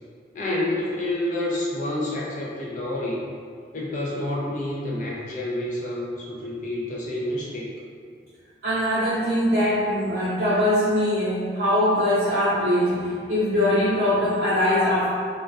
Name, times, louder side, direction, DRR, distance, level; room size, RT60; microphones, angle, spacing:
voice 1, 0.3-3.3 3.7-7.7, left 1 dB, 45° left, -4 dB, 0.5 m, -28 dB
voice 2, 8.6-15.1, left 1 dB, 55° right, -10 dB, 0.5 m, -22 dB
2.3 x 2.2 x 2.5 m, 2.1 s
head